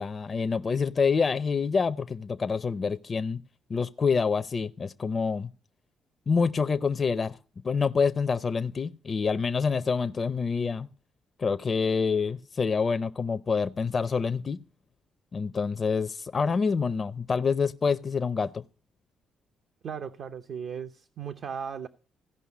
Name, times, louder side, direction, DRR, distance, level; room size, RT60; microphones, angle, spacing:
voice 1, 0.0-3.4 3.7-5.5 6.3-7.4 7.6-10.9 11.4-14.6 15.3-18.6, left 5 dB, 35° left, 0.5 m, -27 dB
voice 2, 19.8-21.9, right 7 dB, 60° right, 0.8 m, -36 dB
15.5 x 5.5 x 8.3 m
cardioid pair, 90°, 0 cm